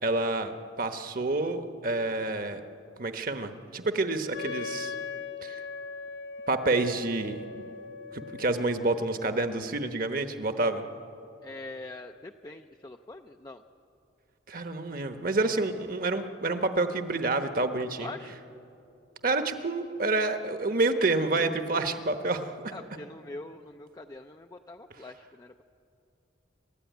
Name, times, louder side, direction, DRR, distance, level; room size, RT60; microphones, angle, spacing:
voice 1, 0.0-2.6 3.0-4.9 5.4-5.6 6.5-7.6 8.1-10.8 14.5-18.1 19.2-22.7, right 2 dB, 45° right, 8 dB, 1.1 m, -28 dB
Wind instrument woodwind instrument, 4.3-10.0, left 4 dB, 70° left, 0.7 m, -40 dB
voice 2, 11.4-13.6 18.0-18.4 22.7-25.6, left 2 dB, 20° left, 5 dB, 0.4 m, -43 dB
28.0 x 13.5 x 9.3 m, 2.8 s
head